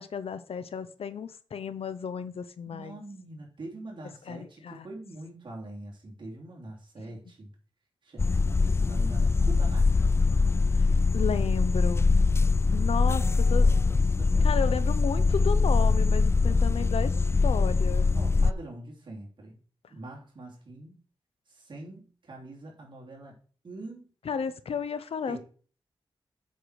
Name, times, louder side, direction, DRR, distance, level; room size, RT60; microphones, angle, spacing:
voice 1, 0.0-3.0 4.3-4.9 7.0-7.2 11.1-12.1 12.7-13.7 14.4-17.1 17.4-18.1 24.2-25.4, left 6 dB, 85° left, 13 dB, 0.8 m, -33 dB
voice 2, 2.7-7.5 8.0-10.2 13.0-15.3 18.1-19.6 19.9-21.0 21.5-23.4 23.6-24.1 25.3-25.4, right 2 dB, 55° right, -2 dB, 3.1 m, -44 dB
sound 1, 8.2-18.5, left 4 dB, 25° left, 0.3 m, -23 dB
8.2 x 6.0 x 4.9 m, 0.40 s
wide cardioid pair, 80°, 10 cm